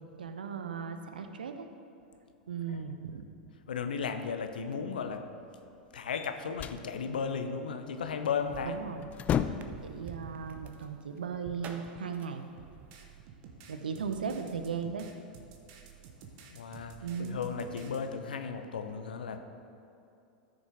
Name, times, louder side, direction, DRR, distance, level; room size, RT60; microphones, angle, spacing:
voice 1, 0.2-1.7 2.5-3.3 8.6-9.1 9.8-12.4 13.7-15.1 17.0-17.4, right 6 dB, 80° right, 7 dB, 0.7 m, -37 dB
voice 2, 3.7-5.3 5.9-8.8 16.5-19.4, left 6 dB, 75° left, 7 dB, 0.7 m, -35 dB
sound 1, 6.1-6.9 8.5-8.7 9.0-9.9, left 9 dB, 30° left, 0.4 m, -32 dB
sound 2, 8.0-13.2, right 6 dB, 35° right, 0.7 m, -49 dB
sound 3, 12.6-18.0, right 6 dB, 50° right, 1.1 m, -52 dB
13.5 x 6.6 x 3.8 m, 2.7 s
figure-of-eight pair, 95°, 5 cm